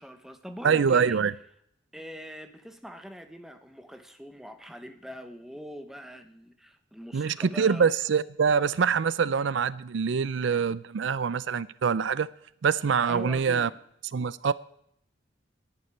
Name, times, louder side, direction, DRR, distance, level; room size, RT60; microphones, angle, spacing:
voice 1, 0.0-1.2 1.9-7.9 13.1-13.8, equal, ahead, 1.1 m, -43 dB
voice 2, 0.6-1.3 7.1-12.3 12.6-13.7 14.1-14.5, right 6 dB, 75° right, 0.4 m, -25 dB
11.0 x 9.5 x 9.8 m
head